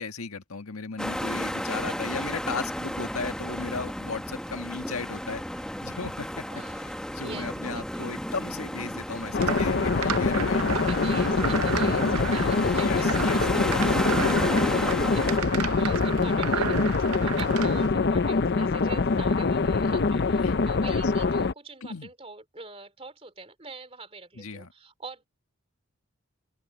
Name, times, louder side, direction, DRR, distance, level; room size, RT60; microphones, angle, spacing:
voice 1, 0.0-6.4 6.8-6.9 7.1-10.9 12.7-14.1 20.4-21.0 21.8-22.1 24.4-24.7, left 4 dB, 80° left, 1.7 m, -36 dB
sound 1, 1.0-15.4, equal, 5° left, 1.2 m, -33 dB
voice 2, 6.5-8.1 10.7-25.2, right 3 dB, 25° right, 3.2 m, -44 dB
sound 2, 9.3-21.5, left 4 dB, 50° left, 0.5 m, -24 dB
sound 3, 9.4-17.9, right 7 dB, 90° right, 0.6 m, -33 dB
open air
head